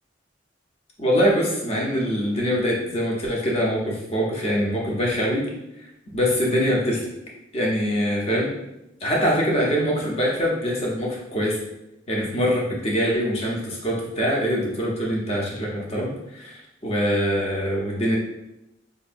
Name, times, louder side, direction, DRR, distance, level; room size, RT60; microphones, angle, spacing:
voice 1, 1.0-5.4 6.1-7.0 7.5-8.5 9.0-11.6 12.1-18.2, equal, 35° left, -3 dB, 0.8 m, -23 dB
5.1 x 2.6 x 2.6 m, 0.86 s
head